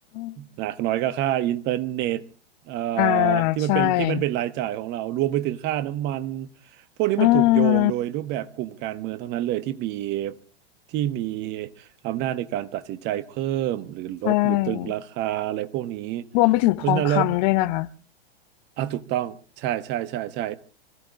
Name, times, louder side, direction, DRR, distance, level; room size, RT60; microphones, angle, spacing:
voice 1, 0.4-2.2 2.7-6.5 7.0-10.4 10.9-16.2 16.8-17.4 18.8-20.6, right 13 dB, 35° right, 1.1 m, -27 dB
voice 2, 3.0-4.2 7.2-7.9 14.2-14.9 16.3-17.9, left 19 dB, 40° left, 0.8 m, -21 dB
25.5 x 15.0 x 3.6 m
figure-of-eight pair, 100°, 30 cm